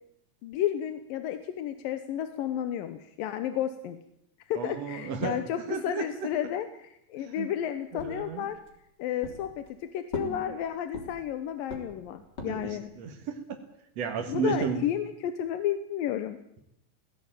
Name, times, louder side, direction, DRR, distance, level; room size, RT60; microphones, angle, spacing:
voice 1, 0.4-4.0 4.5-8.6 9.0-12.9 14.3-16.4, left 10 dB, 75° left, 10 dB, 2.7 m, -32 dB
voice 2, 4.6-5.4 5.7-6.1 7.4-7.5 7.9-8.4 10.2-10.6 12.5-13.4 14.0-14.8, right 6 dB, 50° right, 4 dB, 2.6 m, -33 dB
sound 1, 8.0-8.8 9.2-9.8 10.1-11.3 11.7-12.8, left 2 dB, 30° left, 3.9 m, -40 dB
18.5 x 17.5 x 9.0 m, 0.78 s
omnidirectional pair, 4.1 m